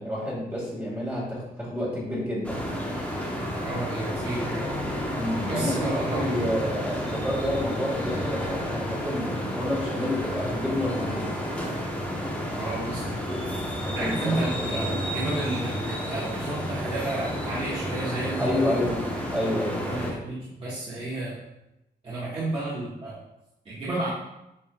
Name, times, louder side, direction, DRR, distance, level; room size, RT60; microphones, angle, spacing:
voice 1, 0.0-2.6 5.1-11.2 13.8-14.4 14.7-14.8 18.4-19.8, left 1 dB, 10° right, -7 dB, 2.2 m, -29 dB
sound 1, 2.4-20.1, equal, 5° left, 1.5 m, -31 dB
voice 2, 3.6-4.6 5.5-6.5 12.6-13.1 13.9-18.7 19.8-21.4 22.0-23.2 23.7-24.1, right 2 dB, 30° right, -10 dB, 2.0 m, -31 dB
9.1 x 4.3 x 2.6 m, 0.91 s
cardioid pair, 100°, 17 cm